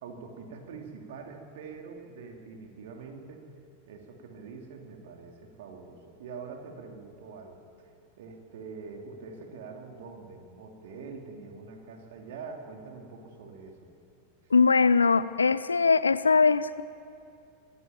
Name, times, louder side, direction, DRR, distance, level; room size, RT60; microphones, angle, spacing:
voice 1, 0.0-3.5 3.9-7.9 8.2-13.9, right 4 dB, 55° right, 2 dB, 2.9 m, -44 dB
voice 2, 14.5-16.8, left 4 dB, 75° left, 17 dB, 0.6 m, -21 dB
25.0 x 11.5 x 9.0 m, 2.4 s
figure-of-eight pair, 90°, 0 cm